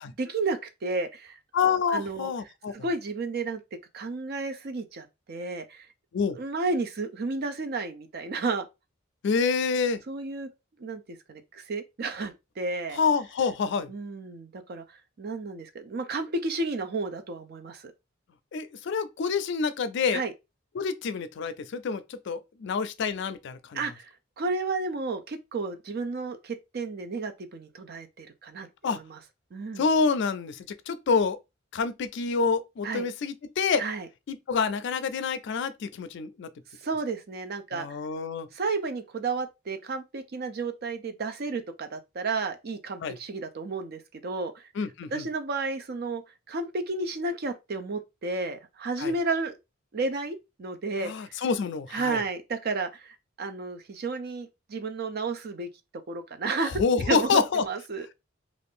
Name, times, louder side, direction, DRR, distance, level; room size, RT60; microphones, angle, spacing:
voice 1, 0.2-1.4 1.9-2.3 2.7-3.6 3.9-5.9 6.3-8.7 10.1-10.5 10.8-13.0 13.9-14.8 15.2-17.9 20.1-20.3 23.7-24.1 24.4-29.2 29.5-29.8 32.8-33.1 33.8-34.1 36.8-37.9 38.5-44.6 45.1-46.2 46.5-49.5 49.9-51.1 51.9-55.7 56.1-56.8 57.1-58.1, right 3 dB, 55° right, 0.5 m, -32 dB
voice 2, 1.5-2.7 6.1-6.4 9.2-10.0 12.9-13.9 18.5-20.2 20.7-23.8 28.8-29.0 29.8-31.4 31.7-33.8 34.3-36.5 37.7-38.5 43.0-43.2 44.8-45.3 49.0-49.1 51.0-52.2 56.8-57.6, left 5 dB, 65° left, 0.4 m, -27 dB
2.5 x 2.5 x 3.5 m
head